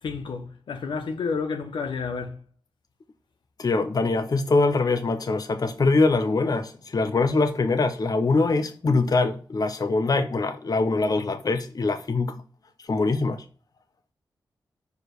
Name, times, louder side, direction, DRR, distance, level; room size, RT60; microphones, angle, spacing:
voice 1, 0.0-2.4, left 5 dB, 75° left, 0.9 m, -30 dB
voice 2, 3.6-12.4 12.9-13.4, left 3 dB, 50° left, 0.6 m, -23 dB
4.8 x 4.8 x 4.5 m
supercardioid pair, 40°, 8 cm